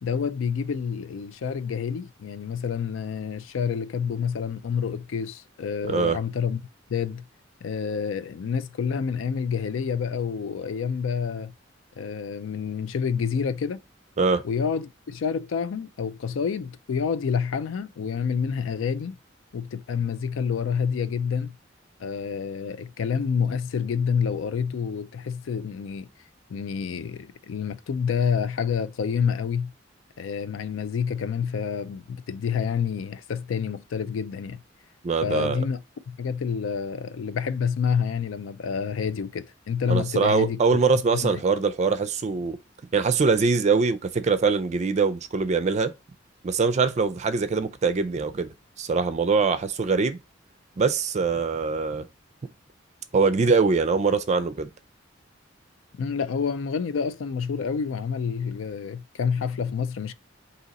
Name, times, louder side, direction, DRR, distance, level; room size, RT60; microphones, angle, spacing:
voice 1, 0.0-6.6 6.9-7.2 7.6-11.5 12.0-13.8 14.4-19.2 19.5-21.5 22.0-26.1 26.5-29.7 30.2-34.6 35.2-35.8 36.1-40.8 41.1-41.4 56.0-60.1, left 6 dB, 85° left, 0.4 m, -28 dB
voice 2, 5.9-6.2 14.2-14.4 35.0-35.6 39.9-42.6 42.9-45.9 46.4-50.2 50.8-52.1 53.1-54.7, right 4 dB, 35° right, 0.4 m, -23 dB
4.0 x 2.8 x 4.0 m
head